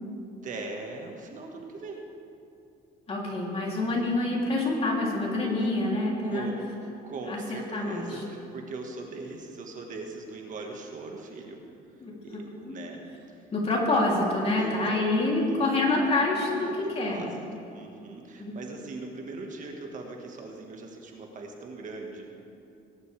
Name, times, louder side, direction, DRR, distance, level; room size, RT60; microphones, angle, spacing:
voice 1, 0.4-2.1 5.6-5.7 6.2-6.7 7.0-11.6 12.2-13.0 13.3-13.4 14.5-15.7 16.4-22.3, right 3 dB, 50° right, 2 dB, 1.7 m, -40 dB
voice 2, 3.1-6.5 7.3-8.2 12.0-12.7 13.5-17.2 18.4-18.5, left 2 dB, 35° left, -3 dB, 3.2 m, -27 dB
19.5 x 11.0 x 3.5 m, 2.7 s
cardioid pair, 110°, 17 cm